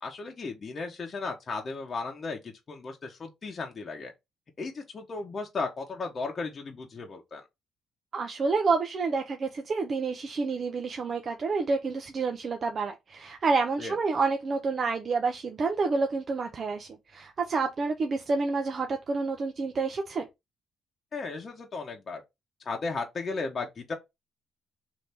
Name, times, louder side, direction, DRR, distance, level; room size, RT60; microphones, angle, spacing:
voice 1, 0.0-4.1 4.6-7.4 13.8-14.0 21.1-22.2 22.6-23.9, left 3 dB, 40° left, 0.9 m, -35 dB
voice 2, 8.1-20.3, right 4 dB, 45° right, 0.6 m, -29 dB
3.3 x 2.8 x 4.2 m
cardioid pair, 90°, 0 cm